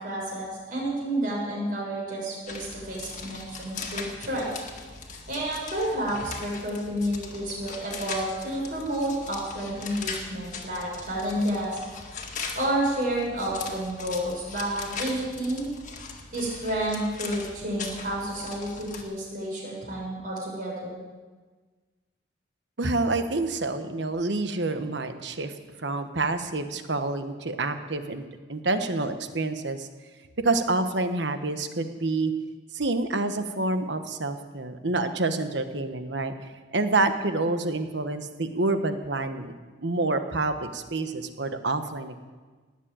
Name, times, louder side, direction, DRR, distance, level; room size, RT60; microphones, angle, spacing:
voice 1, 0.0-4.5 5.3-11.8 12.5-15.7 16.3-21.0, right 1 dB, 45° right, -4 dB, 6.5 m, -30 dB
sound 1, 2.5-19.0, left 4 dB, 40° left, 1.9 m, -40 dB
voice 2, 22.8-25.5 25.8-28.2 28.5-29.9 30.4-32.3 32.7-36.3 36.7-39.5 39.8-42.2, right 2 dB, 65° right, 8 dB, 1.2 m, -27 dB
19.0 x 7.5 x 9.1 m, 1.4 s
head